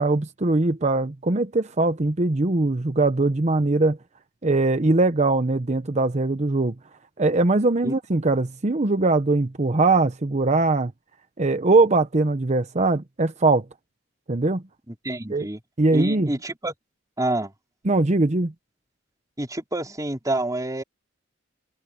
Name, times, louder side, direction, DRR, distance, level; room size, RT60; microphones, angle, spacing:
voice 1, 0.0-4.0 4.4-6.7 7.2-10.9 11.4-13.6 14.3-14.6 15.3-15.5 15.8-16.3 17.8-18.5, right 2 dB, 35° right, 0.8 m, -21 dB
voice 2, 14.9-15.6 15.9-16.7 17.2-17.5 19.4-20.8, right 1 dB, 20° right, 4.2 m, -28 dB
head